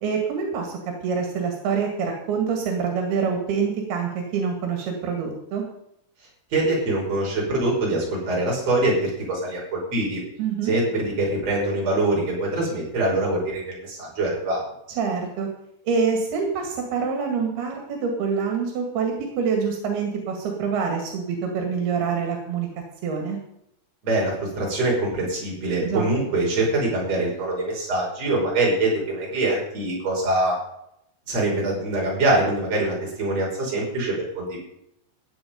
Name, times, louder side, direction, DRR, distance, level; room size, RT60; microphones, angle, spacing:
voice 1, 0.0-5.6 10.4-10.7 15.0-15.5 15.9-22.7 23.0-23.4 25.8-26.1, right 5 dB, 85° right, 2 dB, 4.1 m, -26 dB
voice 2, 6.5-10.2 10.6-14.6 24.0-30.6 31.3-34.6, right 2 dB, 40° right, -3 dB, 6.3 m, -24 dB
16.0 x 9.6 x 5.3 m, 0.78 s
omnidirectional pair, 4.4 m